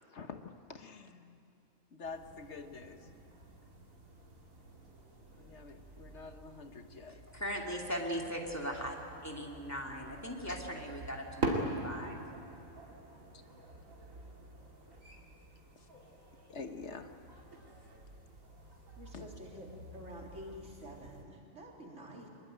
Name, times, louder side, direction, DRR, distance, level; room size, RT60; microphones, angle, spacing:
voice 1, 0.1-1.4 1.9-3.1 5.4-7.2 10.5-10.6 13.3-13.4 15.8-15.9 16.5-17.1 19.1-19.3, left 4 dB, 60° left, 7 dB, 1.4 m, -47 dB
sound 1, 2.0-21.2, right 2 dB, 90° right, 3.2 m, -45 dB
voice 2, 7.3-9.0 9.2-12.2, equal, 10° left, 0 dB, 2.8 m, -39 dB
voice 3, 19.0-22.3, equal, 65° right, -1 dB, 3.9 m, -49 dB
24.0 x 22.0 x 9.1 m, 2.7 s
omnidirectional pair, 1.3 m